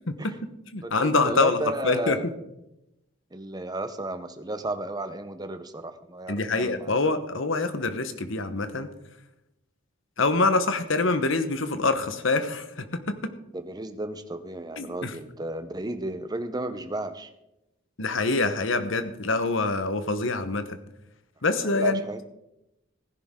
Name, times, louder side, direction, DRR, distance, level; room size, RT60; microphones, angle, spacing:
voice 1, 0.1-0.4 0.7-2.2 6.3-8.9 10.2-13.2 14.8-15.2 18.0-20.8 21.4-22.0, left 3 dB, 65° left, 10 dB, 1.1 m, -25 dB
voice 2, 0.8-2.3 3.3-7.0 13.5-17.3 21.6-22.2, right 2 dB, 20° right, 10 dB, 0.8 m, -33 dB
16.0 x 10.5 x 3.7 m, 0.88 s
head